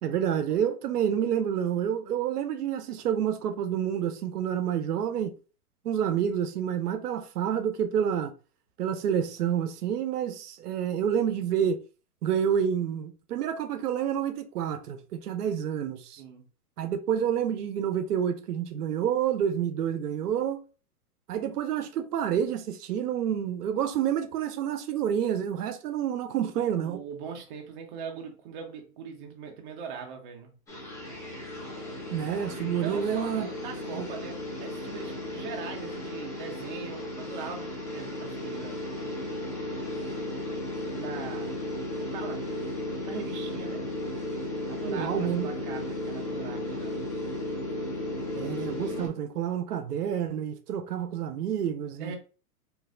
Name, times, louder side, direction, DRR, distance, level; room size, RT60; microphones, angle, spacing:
voice 1, 0.0-5.3 5.8-8.3 8.8-11.8 12.2-16.2 16.8-20.6 21.3-27.0 32.1-33.5 33.9-34.1 44.8-45.5 48.4-52.2, right 9 dB, 90° right, 0.6 m, -28 dB
voice 2, 16.2-16.5 26.8-30.5 32.7-39.5 41.0-41.5 42.0-42.5 43.0-43.9 44.7-47.0 52.0-52.2, right 6 dB, 35° right, 0.6 m, -41 dB
sound 1, 30.7-49.1, left 1 dB, 5° left, 1.0 m, -35 dB
3.1 x 2.5 x 2.4 m
hypercardioid pair, 145°, 46 cm